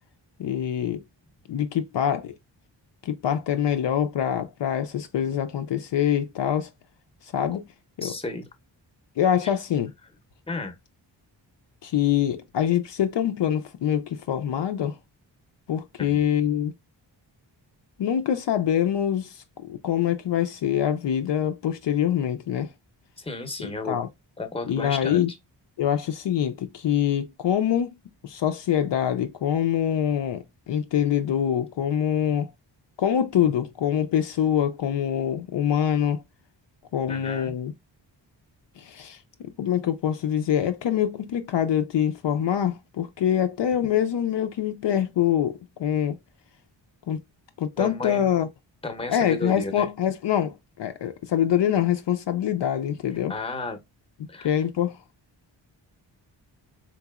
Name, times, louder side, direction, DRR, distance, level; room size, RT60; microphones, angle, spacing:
voice 1, 0.4-1.0 1.5-2.3 3.0-6.7 7.3-7.6 8.0-8.1 9.2-9.9 11.8-15.0 15.7-16.7 18.0-19.3 19.6-22.7 23.9-24.1 24.7-25.3 25.8-28.0 28.2-32.5 33.0-36.2 36.9-37.7 38.8-39.2 39.6-46.2 47.1-47.2 47.6-48.5 49.1-53.3 54.4-55.0, left 9 dB, 70° left, 0.6 m, -24 dB
voice 2, 8.0-8.5 9.4-9.5 10.5-10.8 16.0-16.2 23.2-24.0 24.4-25.2 37.1-37.5 47.8-48.4 48.8-49.9 53.3-53.8 54.3-54.5, left 2 dB, 15° left, 0.8 m, -33 dB
3.8 x 2.9 x 2.3 m
wide cardioid pair, 90°, 45 cm